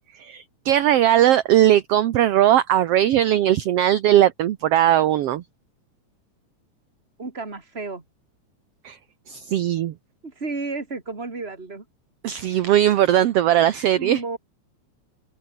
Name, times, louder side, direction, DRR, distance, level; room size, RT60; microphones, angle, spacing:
voice 1, 0.2-5.4 8.8-9.0 9.3-9.9 12.2-14.2, right 12 dB, 65° right, 1.9 m, -19 dB
voice 2, 7.2-8.0 10.2-11.8 12.9-13.0 13.9-14.4, right 3 dB, 20° right, 3.4 m, -32 dB
open air
omnidirectional pair, 3.3 m